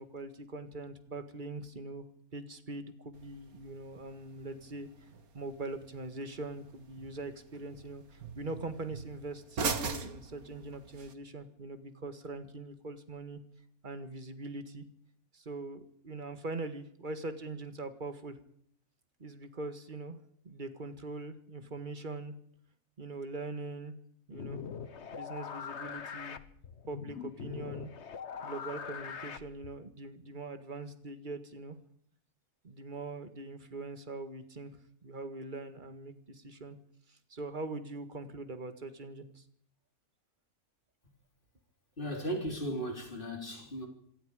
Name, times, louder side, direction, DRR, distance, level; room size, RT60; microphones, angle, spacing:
voice 1, 0.0-2.1 2.3-5.1 5.3-13.4 13.8-14.9 15.3-18.4 19.2-22.4 23.0-24.0 24.3-24.6 25.1-26.4 26.9-27.9 28.4-31.8 32.6-36.8 37.1-39.4, right 2 dB, 35° right, 1.9 m, -42 dB
sound 1, 3.1-11.1, right 4 dB, 75° right, 2.1 m, -42 dB
sound 2, 24.3-29.9, left 6 dB, 50° left, 1.3 m, -42 dB
voice 2, 42.0-43.9, equal, 35° left, 4.0 m, -36 dB
26.5 x 22.5 x 5.1 m
omnidirectional pair, 1.5 m